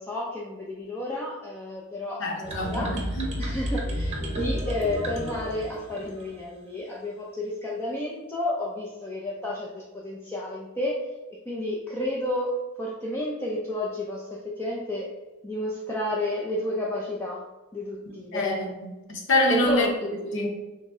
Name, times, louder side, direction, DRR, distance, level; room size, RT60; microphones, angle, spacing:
voice 1, 0.0-2.9 3.4-9.7 9.9-11.0 11.5-15.1 15.4-17.4 17.7-18.4 19.5-19.9, left 1 dB, 10° left, -5 dB, 0.5 m, -31 dB
voice 2, 2.2-3.3 18.3-18.7 19.1-19.9 20.2-20.5, left 1 dB, 60° left, 0 dB, 0.8 m, -25 dB
sound 1, 2.4-6.4, equal, 30° right, 0.8 m, -31 dB
5.8 x 2.1 x 3.7 m, 1.1 s
head